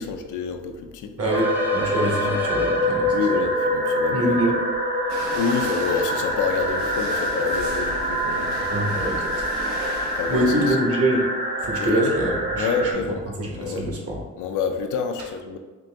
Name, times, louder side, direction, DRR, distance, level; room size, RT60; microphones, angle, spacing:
voice 1, 0.0-1.1 2.1-2.2 3.1-4.4 5.3-8.7 10.1-10.8 11.7-12.1 12.6-13.3 13.6-13.9 14.4-15.6, left 5 dB, 80° left, 5 dB, 0.5 m, -27 dB
sound 1, 1.2-3.5, left 3 dB, 5° right, 0.7 m, -33 dB
voice 2, 1.2-3.2 4.1-4.5 8.7-9.5 10.3-11.3 11.6-12.9 13.4-14.2, right 1 dB, 50° right, -1 dB, 1.2 m, -24 dB
sound 2, 1.3-12.9, equal, 30° right, 1.0 m, -25 dB
sound 3, 5.1-10.7, right 3 dB, 70° right, 0.7 m, -36 dB
3.9 x 2.8 x 3.4 m, 1.3 s
cardioid pair, 90°, 30 cm